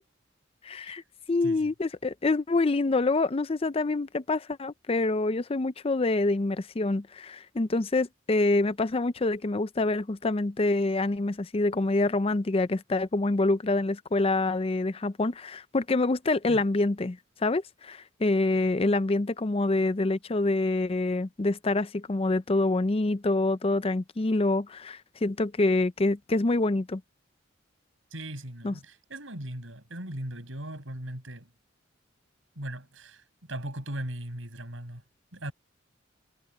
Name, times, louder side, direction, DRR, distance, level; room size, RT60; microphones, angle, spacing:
voice 1, 0.6-1.0 1.3-27.0 28.6-28.7, left 2 dB, 30° left, 0.5 m, -26 dB
voice 2, 1.4-1.7 16.5-16.6 28.1-31.5 32.6-35.0 35.3-35.5, right 1 dB, 90° right, 5.9 m, -38 dB
head